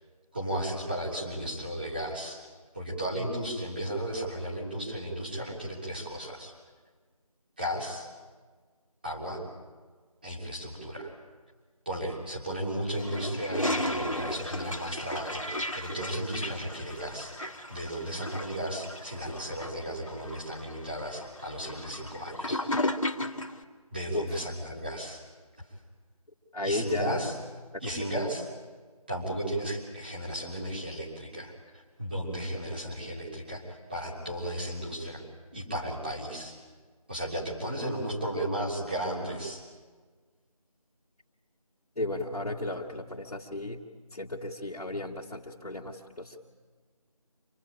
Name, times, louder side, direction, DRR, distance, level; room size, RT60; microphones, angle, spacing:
voice 1, 0.3-2.4 2.7-6.5 7.6-8.1 9.0-9.4 10.2-11.1 11.8-17.3 17.7-22.6 23.9-25.2 26.6-27.4 27.8-28.4 29.1-35.2 35.5-36.5 37.1-39.6, right 1 dB, 15° right, -6 dB, 3.4 m, -34 dB
Toilet flush, 12.9-23.6, left 1 dB, 60° left, 1.9 m, -35 dB
voice 2, 26.5-27.3 27.7-27.8 28.1-28.2 42.0-43.8 44.1-46.4, left 2 dB, 75° left, -2 dB, 2.4 m, -34 dB
26.5 x 19.5 x 8.8 m, 1.5 s
figure-of-eight pair, 180°, 19 cm